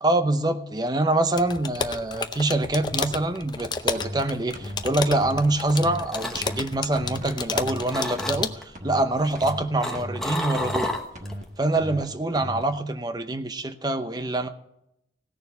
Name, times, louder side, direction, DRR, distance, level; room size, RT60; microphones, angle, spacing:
voice 1, 0.0-10.9 11.6-14.5, right 2 dB, 25° right, 9 dB, 0.7 m, -25 dB
sound 1, 1.4-8.6, left 4 dB, 25° left, 0.5 m, -32 dB
sound 2, 3.9-4.2 4.5-4.9 5.1-5.4 5.7-6.1 6.3-6.7 7.0-7.3 7.5-7.9 8.1-8.5 8.7-9.1 9.4-9.6 9.9-10.2 10.6-10.8 11.2-11.4 11.8-12.0 12.4-12.6, equal, 40° right, 1.3 m, -36 dB
sound 3, 5.9-7.5 7.9-8.6 9.2-11.4 11.8-12.1, left 1 dB, ahead, 1.0 m, -32 dB
17.0 x 6.8 x 6.9 m, 0.82 s
head